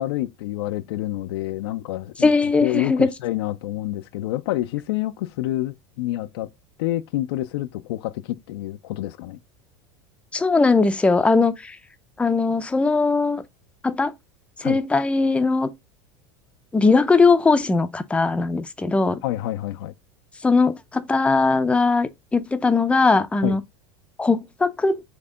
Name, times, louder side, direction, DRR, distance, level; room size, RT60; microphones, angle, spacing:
voice 1, 0.0-2.3 2.6-6.5 6.8-9.4 14.6-14.8 19.2-19.9 23.4-23.6, left 15 dB, 75° left, 0.4 m, -28 dB
voice 2, 2.2-3.1 10.3-11.8 12.2-13.4 13.8-14.1 14.6-15.7 16.7-19.2 20.4-23.6 24.2-25.0, left 3 dB, 10° left, 0.4 m, -19 dB
4.3 x 2.7 x 3.7 m
supercardioid pair, 105°, 13 cm